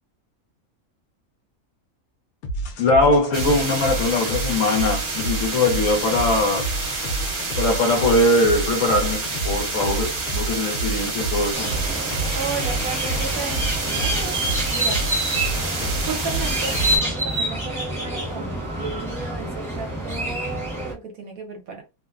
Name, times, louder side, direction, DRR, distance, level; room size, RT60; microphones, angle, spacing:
sound 1, 2.4-17.2, right 2 dB, 90° left, 1.1 m, -30 dB
voice 1, 2.8-6.7 7.6-11.7, left 2 dB, 65° left, 1.1 m, -21 dB
sound 2, 3.3-17.0, right 3 dB, 40° right, 0.9 m, -29 dB
sound 3, 11.5-20.9, right 1 dB, ahead, 0.8 m, -27 dB
voice 2, 12.3-14.4 14.7-15.0 15.4-21.8, right 4 dB, 75° right, 1.3 m, -34 dB
3.0 x 2.1 x 2.3 m
omnidirectional pair, 1.5 m